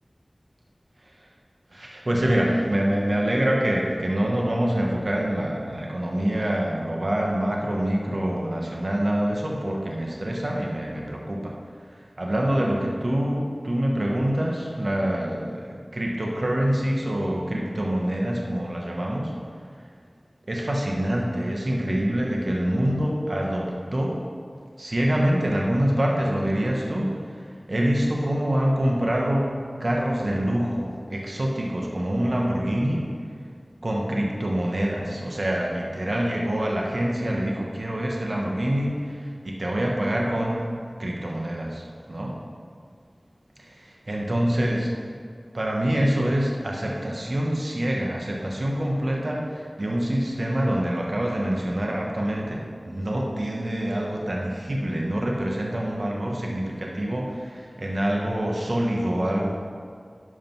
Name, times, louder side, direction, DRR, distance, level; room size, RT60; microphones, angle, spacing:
voice 1, 1.7-19.3 20.5-24.2 24.8-29.5 29.8-33.1 33.8-40.7 41.0-41.8 42.1-42.3 43.6-44.9 45.5-59.5, right 1 dB, 60° right, -2 dB, 1.3 m, -25 dB
11.0 x 5.2 x 6.0 m, 2.1 s
wide cardioid pair, 55°, 0 cm